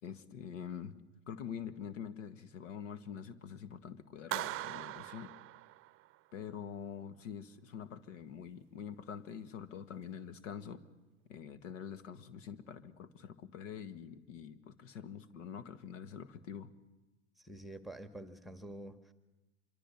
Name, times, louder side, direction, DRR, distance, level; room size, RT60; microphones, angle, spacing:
voice 1, 0.0-0.9 1.3-5.3 6.3-10.8 11.3-16.7, left 8 dB, 65° left, 12 dB, 1.8 m, -45 dB
Clapping, 4.3-6.2, right 17 dB, 35° right, 0.8 m, -41 dB
voice 2, 17.4-19.1, right 1 dB, ahead, 9 dB, 1.7 m, -48 dB
26.0 x 23.5 x 7.3 m, 1.1 s
hypercardioid pair, 100°, 40 cm